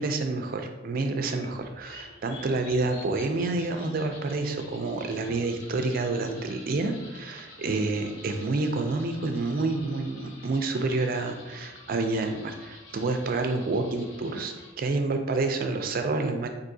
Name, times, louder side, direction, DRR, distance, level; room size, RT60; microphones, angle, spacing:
voice 1, 0.0-16.5, right 3 dB, 50° right, 5 dB, 0.4 m, -28 dB
sound 1, 1.2-14.7, left 2 dB, 90° left, 0.7 m, -48 dB
4.5 x 2.7 x 2.6 m, 1.1 s
head